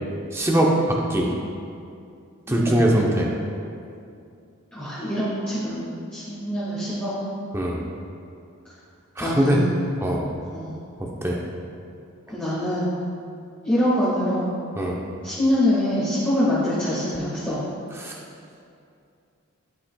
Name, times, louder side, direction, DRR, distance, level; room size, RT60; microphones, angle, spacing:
voice 1, 0.3-1.3 2.5-3.3 7.5-7.8 9.2-9.6 10.0-10.3 11.0-11.4 14.8-15.0 18.0-18.1, right 1 dB, 10° right, -1 dB, 0.6 m, -21 dB
voice 2, 2.5-3.1 4.7-7.1 9.2-9.7 10.5-10.8 12.3-13.0 13.6-14.5 15.2-17.6, left 1 dB, 5° left, -12 dB, 1.6 m, -25 dB
11.5 x 5.4 x 2.3 m, 2.5 s
head